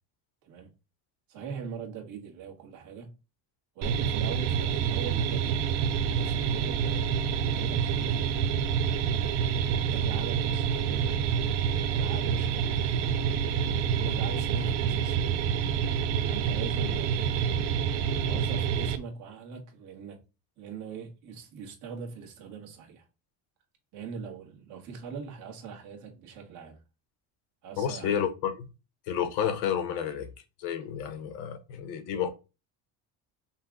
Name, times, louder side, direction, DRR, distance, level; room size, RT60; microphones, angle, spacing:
voice 1, 1.3-3.1 3.7-8.3 8.8-9.1 9.8-11.2 11.9-13.2 13.9-15.4 16.3-17.5 18.2-20.2 20.6-23.1 23.9-26.8 27.6-28.3, right 6 dB, 45° right, 1.5 m, -42 dB
sound 1, 3.8-19.0, right 7 dB, 75° right, 0.7 m, -27 dB
voice 2, 27.8-28.5 29.1-30.3 30.6-32.3, left 8 dB, 70° left, 1.2 m, -30 dB
5.6 x 2.4 x 3.7 m
cardioid pair, 170°, 41 cm